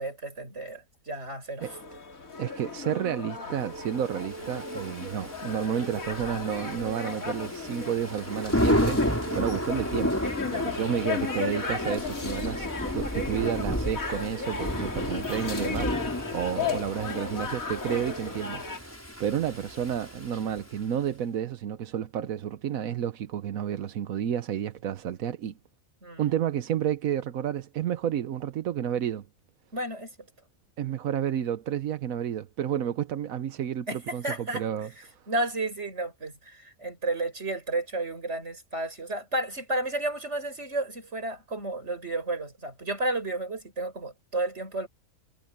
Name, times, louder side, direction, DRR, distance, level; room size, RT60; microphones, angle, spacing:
voice 1, 0.0-1.6 26.0-26.4 29.7-30.1 33.9-34.6 35.3-44.9, right 2 dB, 55° right, 5.9 m, -32 dB
sound 1, 1.6-18.8, left 4 dB, 80° left, 3.1 m, -35 dB
voice 2, 2.4-12.7 12.9-25.6 26.2-29.3 30.8-34.9 35.1-35.2, right 9 dB, 85° right, 1.3 m, -31 dB
Thunder / Rain, 4.2-20.8, equal, 10° left, 5.8 m, -32 dB
omnidirectional pair, 1.4 m